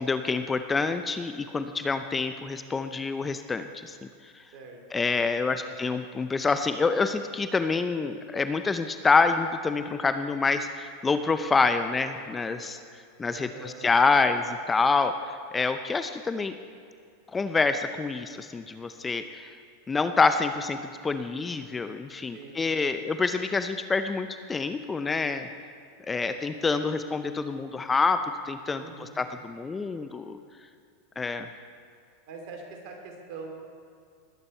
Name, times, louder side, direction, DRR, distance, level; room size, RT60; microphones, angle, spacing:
voice 1, 0.0-3.9 4.9-12.8 13.2-16.6 17.3-19.5 19.9-20.8 21.0-25.5 26.1-28.2 28.5-30.4 31.2-31.5, left 4 dB, 15° left, 9 dB, 0.6 m, -27 dB
voice 2, 4.5-5.1 5.4-5.7 13.3-13.9 22.3-22.7 28.8-29.3 32.3-33.5, right 4 dB, 55° right, 2 dB, 2.9 m, -44 dB
20.0 x 8.8 x 4.4 m, 2.3 s
hypercardioid pair, 105°, 0 cm